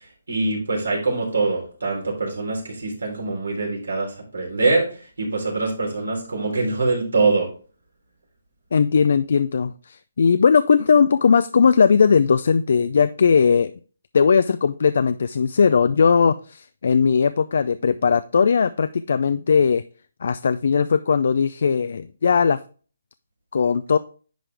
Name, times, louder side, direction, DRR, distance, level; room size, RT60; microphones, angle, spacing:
voice 1, 0.3-4.9 5.2-7.5, right 3 dB, 85° right, -1 dB, 3.5 m, -23 dB
voice 2, 8.7-13.7 14.1-19.8 20.2-22.6 23.5-24.0, left 6 dB, 65° left, 13 dB, 0.3 m, -18 dB
10.0 x 3.8 x 3.3 m, 0.39 s
hypercardioid pair, 155°, 0 cm